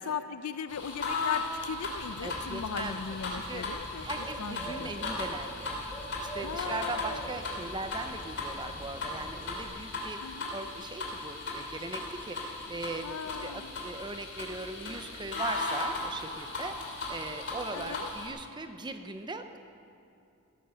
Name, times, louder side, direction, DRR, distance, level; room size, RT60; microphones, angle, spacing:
voice 1, 0.0-4.9 6.4-7.4 10.2-10.5 13.0-13.7 17.7-18.1, left 6 dB, 90° left, 11 dB, 0.5 m, -38 dB
sound 1, 0.7-18.3, left 3 dB, 55° left, 2.7 m, -37 dB
Bird, 1.9-9.7, right 1 dB, 10° left, 2.9 m, -45 dB
voice 2, 2.2-3.7 4.0-5.8 6.2-10.2 10.5-13.1 13.4-19.6, right 3 dB, 20° right, 7 dB, 0.6 m, -39 dB
16.0 x 9.2 x 6.3 m, 2.7 s
head